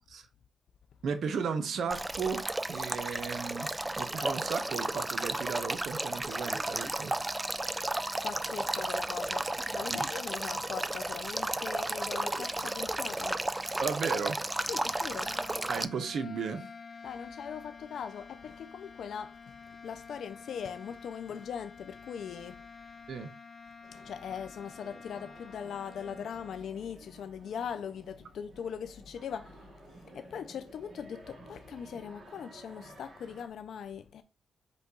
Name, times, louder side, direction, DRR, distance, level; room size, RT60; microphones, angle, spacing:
voice 1, 1.0-7.2 9.9-10.1 13.8-14.4 15.7-16.7 23.1-23.3, right 5 dB, 70° right, 0.6 m, -35 dB
Male speech man speaking / Stream / Trickle dribble, 1.9-15.9, right 1 dB, 15° right, 0.3 m, -33 dB
voice 2, 8.2-13.4 14.7-15.4 17.0-19.4 19.8-22.7 23.9-29.7 30.1-34.2, left 7 dB, 75° left, 0.3 m, -40 dB
sound 1, 14.8-26.7, left 5 dB, 35° left, 0.7 m, -50 dB
sound 2, 23.8-33.5, right 1 dB, 55° right, 1.2 m, -54 dB
5.2 x 2.3 x 3.8 m
cardioid pair, 80°, 0 cm